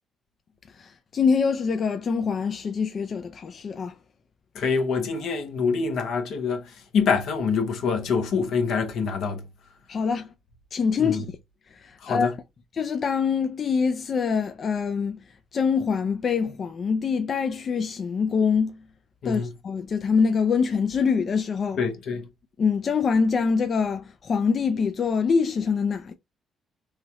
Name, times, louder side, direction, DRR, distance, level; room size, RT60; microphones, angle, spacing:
voice 1, 0.7-3.9 9.9-10.3 10.7-11.3 11.7-12.3 12.7-15.2 15.5-18.8 19.2-21.8 22.6-26.1, left 5 dB, 50° left, 0.4 m, -24 dB
voice 2, 4.5-6.6 6.9-9.4 11.0-11.2 12.0-12.3 19.2-19.5 21.8-22.3, left 5 dB, 75° left, 0.8 m, -25 dB
3.2 x 3.0 x 2.3 m
cardioid pair, 90°, 0 cm